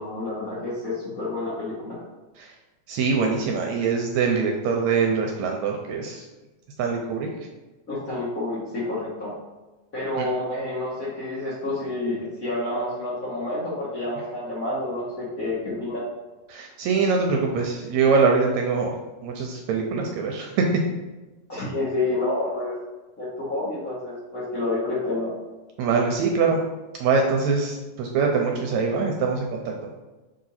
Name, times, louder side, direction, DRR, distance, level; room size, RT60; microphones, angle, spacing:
voice 1, 0.0-2.0 7.9-9.3 9.9-16.1 21.5-22.7 23.2-25.3, left 2 dB, 55° left, -7 dB, 1.0 m, -29 dB
voice 2, 2.9-6.2 6.8-7.3 10.2-10.3 16.5-18.9 19.2-20.7 25.8-26.6 27.0-29.6, right 5 dB, 80° right, 1 dB, 1.8 m, -23 dB
6.1 x 3.8 x 4.1 m, 1.1 s
omnidirectional pair, 3.5 m